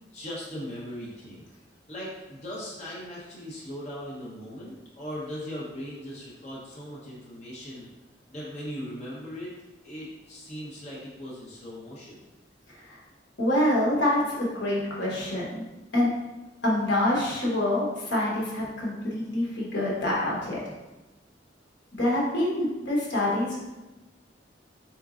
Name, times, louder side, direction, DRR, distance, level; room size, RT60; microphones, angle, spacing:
voice 1, 0.1-1.5 1.9-7.9 8.3-9.5 9.8-12.2, equal, 40° left, -7 dB, 1.0 m, -39 dB
voice 2, 13.4-15.6 15.9-16.1 16.6-20.7 21.9-23.6, left 1 dB, 70° left, -5 dB, 1.2 m, -26 dB
4.4 x 3.9 x 2.5 m, 1.1 s
head